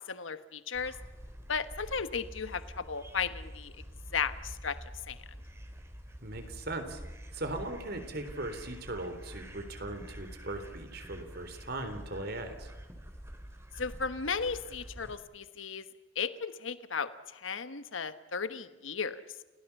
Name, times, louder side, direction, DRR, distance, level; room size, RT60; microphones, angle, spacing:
voice 1, 0.1-0.9 1.5-3.7 4.1-4.7 5.1-5.2 13.8-15.8 16.1-19.2, left 5 dB, 80° left, 12 dB, 1.2 m, -35 dB
sound 1, 0.7-15.2, equal, 15° right, 3.0 m, -47 dB
voice 2, 6.2-7.0 7.3-12.7, right 2 dB, 55° right, 8 dB, 3.7 m, -39 dB
29.5 x 18.5 x 7.1 m, 1.2 s
head